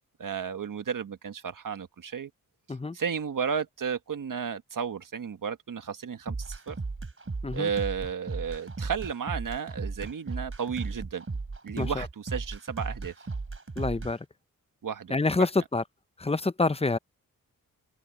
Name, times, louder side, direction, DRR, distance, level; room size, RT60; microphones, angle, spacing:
voice 1, 0.2-2.3 2.9-6.8 7.5-11.2 11.6-13.1 14.8-15.5, right 7 dB, 60° right, 1.6 m, -33 dB
sound 1, 6.3-14.1, right 3 dB, 35° right, 3.9 m, -36 dB
voice 2, 13.8-14.2 15.1-15.8 16.2-17.0, left 3 dB, 15° left, 0.9 m, -27 dB
cardioid pair, 50°, 36 cm